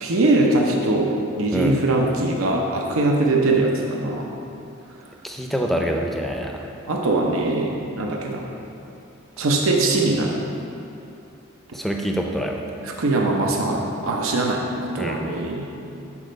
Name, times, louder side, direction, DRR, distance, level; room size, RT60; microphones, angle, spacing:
voice 1, 0.0-4.3 6.9-8.5 9.4-10.3 12.8-14.6 14.9-15.7, right 2 dB, 85° right, 0 dB, 0.7 m, -21 dB
voice 2, 5.2-6.6 11.7-12.6 15.0-15.2, equal, ahead, 1 dB, 0.5 m, -25 dB
8.6 x 4.2 x 5.1 m, 2.8 s
head